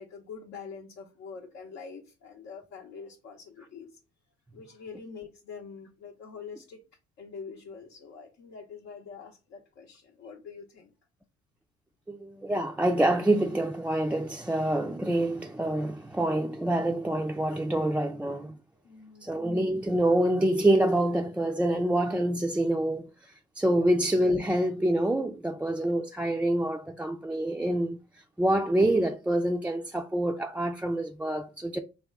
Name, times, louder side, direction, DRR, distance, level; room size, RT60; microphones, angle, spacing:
voice 1, 0.0-4.0 4.5-6.8 7.2-10.9 18.8-19.3 23.7-23.9, left 5 dB, 75° left, 0.7 m, -45 dB
voice 2, 12.1-18.6 19.2-23.1 23.6-28.0 28.4-31.8, right 1 dB, 5° right, 0.4 m, -26 dB
3.5 x 2.3 x 3.5 m
supercardioid pair, 70°, 19 cm